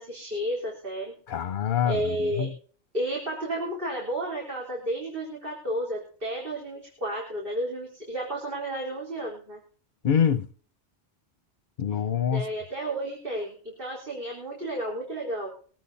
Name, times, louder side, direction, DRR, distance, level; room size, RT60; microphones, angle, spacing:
voice 1, 0.0-1.1 1.8-2.5 2.9-9.6 12.3-15.5, right 1 dB, 50° right, 4.0 m, -32 dB
voice 2, 1.3-2.5 10.0-10.5 11.8-12.5, left 8 dB, 50° left, 0.9 m, -25 dB
22.0 x 8.5 x 4.1 m
omnidirectional pair, 1.1 m